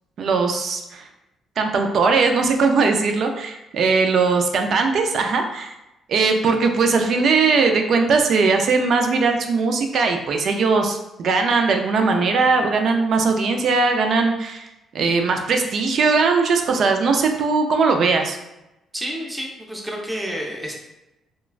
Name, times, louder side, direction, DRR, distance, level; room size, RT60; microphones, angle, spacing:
voice 1, 0.2-1.0 1.6-5.7 6.1-14.7 14.9-18.4, right 4 dB, 60° right, 4 dB, 0.3 m, -19 dB
voice 2, 18.9-20.7, equal, 10° right, -1 dB, 0.5 m, -29 dB
3.0 x 2.2 x 2.4 m, 0.94 s
cardioid pair, 110°, 0 cm